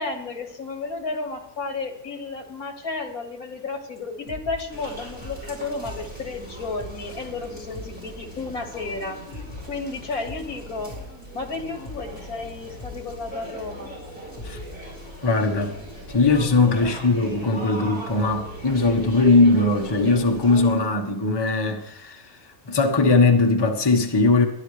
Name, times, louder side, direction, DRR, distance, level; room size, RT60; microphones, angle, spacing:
voice 1, 0.0-9.2 9.7-10.9 11.3-13.9 16.8-17.0, left 3 dB, 75° left, 2.3 m, -32 dB
sound 1, 4.0-4.1 4.3-4.9 5.2-8.7 9.0-13.8 14.1-14.2 14.4-14.7, left 1 dB, 55° left, 2.5 m, -42 dB
sound 2, 4.7-20.8, equal, 5° right, 6.5 m, -39 dB
voice 2, 15.2-15.7 16.1-22.2 22.7-24.4, left 3 dB, 20° left, 1.1 m, -20 dB
21.5 x 12.0 x 3.3 m
omnidirectional pair, 1.6 m